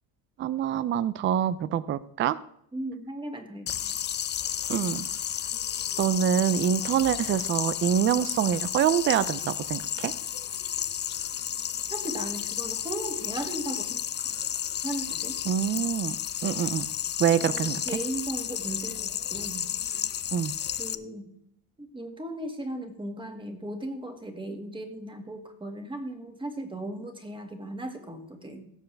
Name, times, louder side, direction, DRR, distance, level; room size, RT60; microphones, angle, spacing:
voice 1, 0.4-2.4 4.7-5.1 6.0-10.1 15.5-16.2 16.4-16.9 17.2-17.8 20.3-20.5, right 9 dB, 30° right, 16 dB, 0.4 m, -25 dB
voice 2, 2.7-3.9 11.9-14.3 14.8-15.4 17.4-19.6 20.8-21.3 21.8-28.7, right 1 dB, 10° right, 5 dB, 1.9 m, -37 dB
sound 1, 3.7-20.9, left 10 dB, 30° left, 0.4 m, -32 dB
17.0 x 6.9 x 3.4 m, 0.73 s
cardioid pair, 120°, 39 cm